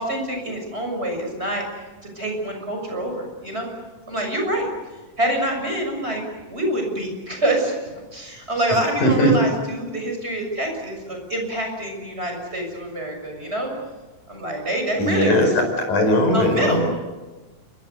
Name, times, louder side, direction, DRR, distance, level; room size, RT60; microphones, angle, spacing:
voice 1, 0.0-1.6 2.0-3.7 4.1-4.7 5.2-13.7 14.3-15.6 16.3-16.8, right 1 dB, 20° right, 2 dB, 6.7 m, -26 dB
voice 2, 9.0-9.4 15.0-16.8, left 1 dB, 70° left, 4 dB, 6.7 m, -19 dB
29.0 x 24.0 x 6.9 m, 1.2 s
omnidirectional pair, 3.6 m